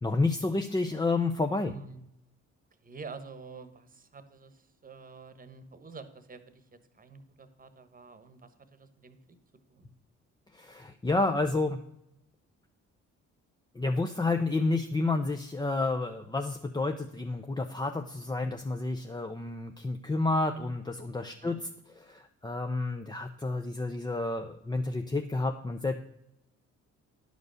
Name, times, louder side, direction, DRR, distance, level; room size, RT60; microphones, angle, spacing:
voice 1, 0.0-1.7 10.5-11.8 13.7-21.6 22.0-26.0, left 3 dB, 15° left, 5 dB, 0.6 m, -30 dB
voice 2, 1.7-2.1 2.8-9.4 9.7-9.9 21.4-21.6, right 4 dB, 30° right, 10 dB, 1.2 m, -48 dB
11.0 x 5.1 x 6.4 m, 0.80 s
cardioid pair, 90°, 30 cm